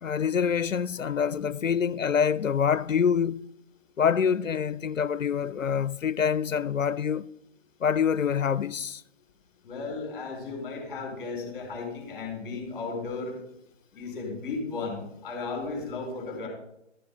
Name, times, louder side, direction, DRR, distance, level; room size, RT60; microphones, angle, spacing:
voice 1, 0.0-3.5 4.0-7.2 7.8-9.0, left 7 dB, 90° left, 0.5 m, -26 dB
voice 2, 9.6-13.3 13.9-16.5, left 4 dB, 15° left, 4.3 m, -35 dB
13.0 x 6.9 x 5.3 m
figure-of-eight pair, 150°, 38 cm